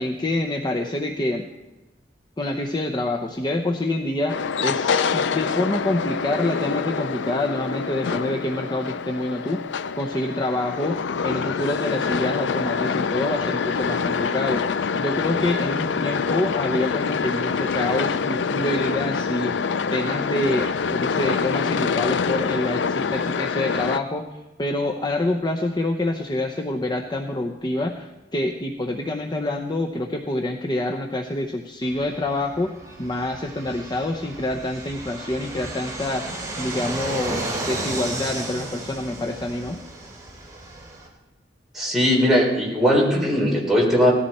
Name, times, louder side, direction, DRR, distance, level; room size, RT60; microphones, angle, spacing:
voice 1, 0.0-1.5 2.4-9.6 10.0-11.0 11.2-14.7 15.0-24.2 24.6-39.8, left 1 dB, 25° left, 2 dB, 0.8 m, -26 dB
sound 1, 4.3-24.0, left 5 dB, 75° left, 0.4 m, -25 dB
Fixed-wing aircraft airplane, 31.8-41.1, right 2 dB, 20° right, 3.1 m, -33 dB
voice 2, 41.7-44.1, equal, ahead, -4 dB, 3.7 m, -19 dB
18.0 x 14.0 x 4.3 m, 1.0 s
head